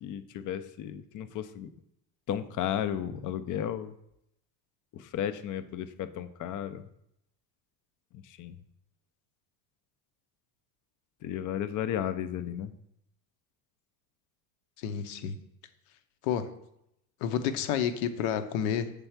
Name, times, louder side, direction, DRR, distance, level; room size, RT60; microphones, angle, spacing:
voice 1, 0.0-1.7 2.3-3.9 5.1-6.8 8.4-8.5 11.2-12.7, left 10 dB, 40° left, 11 dB, 0.6 m, -33 dB
voice 2, 14.8-15.4 16.2-16.5 17.2-18.9, left 8 dB, 70° left, 10 dB, 0.8 m, -30 dB
6.8 x 3.4 x 5.7 m, 0.79 s
supercardioid pair, 95°, 49 cm